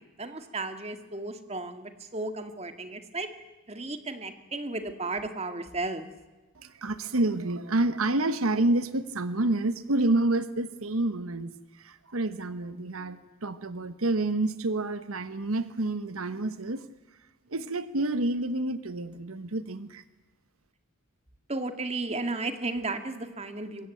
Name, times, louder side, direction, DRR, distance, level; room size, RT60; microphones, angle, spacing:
voice 1, 0.2-3.3 3.7-6.1 21.5-23.9, right 2 dB, 30° right, 8 dB, 1.9 m, -34 dB
voice 2, 6.6-11.5 11.8-16.8 17.5-20.0, right 2 dB, 85° right, 12 dB, 1.2 m, -28 dB
24.5 x 21.5 x 9.1 m, 1.1 s
head